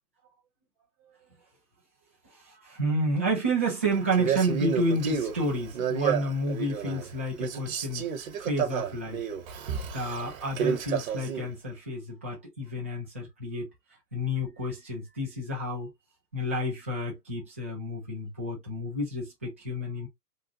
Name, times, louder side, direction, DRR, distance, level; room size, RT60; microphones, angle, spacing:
voice 1, 2.5-8.0 8.4-9.2 9.9-13.7 14.1-15.9 16.3-20.1, right 1 dB, 10° right, 0.4 m, -30 dB
Male speech man speaking, 4.1-7.1 7.4-11.5, right 7 dB, 55° right, 1.1 m, -31 dB
3.6 x 2.3 x 2.7 m
hypercardioid pair, 135°, 49 cm